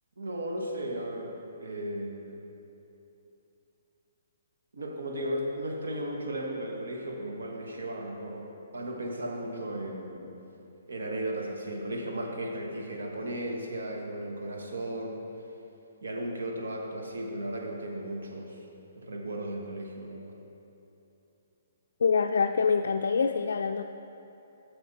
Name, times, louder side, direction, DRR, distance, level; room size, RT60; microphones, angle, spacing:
voice 1, 0.2-2.4 4.7-10.4 10.9-15.3 16.0-18.6 19.0-20.3, right 1 dB, 85° right, 0 dB, 1.3 m, -35 dB
voice 2, 22.0-23.8, left 5 dB, 80° left, 5 dB, 0.3 m, -25 dB
9.7 x 6.6 x 4.1 m, 2.9 s
hypercardioid pair, 150°, 0 cm